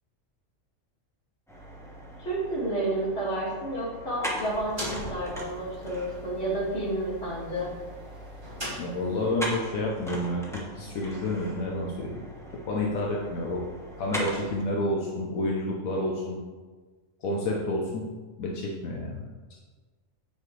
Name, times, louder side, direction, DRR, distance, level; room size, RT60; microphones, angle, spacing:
sound 1, 1.5-14.6, equal, ahead, 1.0 m, -40 dB
voice 1, 2.2-7.7, right 1 dB, 50° left, -6 dB, 2.4 m, -30 dB
sound 2, 4.4-9.4, left 1 dB, 20° right, 1.6 m, -41 dB
voice 2, 8.8-12.2 12.7-13.6 14.0-16.4 17.2-18.1 18.4-19.2, left 1 dB, 80° left, -2 dB, 1.3 m, -29 dB
8.4 x 5.5 x 3.2 m, 1.4 s
omnidirectional pair, 1.4 m